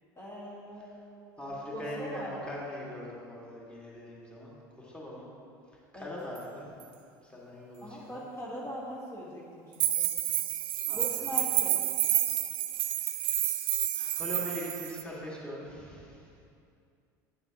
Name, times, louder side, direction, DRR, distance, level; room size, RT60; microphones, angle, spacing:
voice 1, 0.2-2.3 5.9-6.2 7.8-10.1 10.9-11.8, equal, 30° left, -6 dB, 1.6 m, -41 dB
voice 2, 1.4-5.3 5.9-6.7 7.2-8.2 10.9-11.3 12.8-13.6 13.9-16.3, left 1 dB, 10° left, -5 dB, 1.9 m, -42 dB
sound 1, 6.4-6.5 6.8-6.9 9.8-15.0, right 13 dB, 60° right, 0.5 m, -29 dB
9.3 x 6.5 x 2.9 m, 2.4 s
hypercardioid pair, 80°, 10 cm